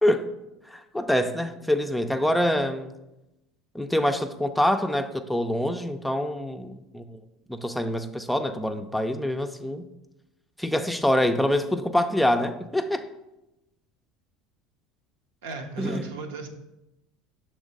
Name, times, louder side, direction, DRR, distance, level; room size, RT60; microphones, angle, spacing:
voice 1, 0.7-2.9 3.7-7.2 7.5-9.8 10.6-13.1 15.8-16.1, left 1 dB, 5° left, 7 dB, 0.5 m, -25 dB
voice 2, 15.4-16.5, right 3 dB, 80° right, 4 dB, 0.8 m, -35 dB
6.2 x 3.3 x 5.2 m, 0.94 s
hypercardioid pair, 80°, 0 cm